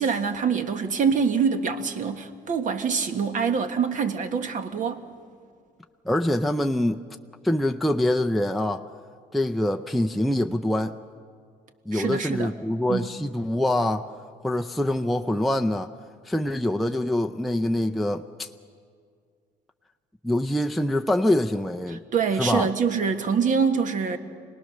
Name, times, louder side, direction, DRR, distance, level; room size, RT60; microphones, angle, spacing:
voice 1, 0.0-5.0 11.9-12.5 12.9-13.1 21.9-24.2, right 6 dB, 50° right, 7 dB, 1.6 m, -25 dB
voice 2, 6.1-7.0 7.4-8.9 9.3-10.9 11.9-14.1 14.4-15.9 16.2-18.5 20.2-22.0 22.4-22.7, left 1 dB, ahead, 4 dB, 0.5 m, -24 dB
26.0 x 19.0 x 6.6 m, 2.1 s
cardioid pair, 110°, 17 cm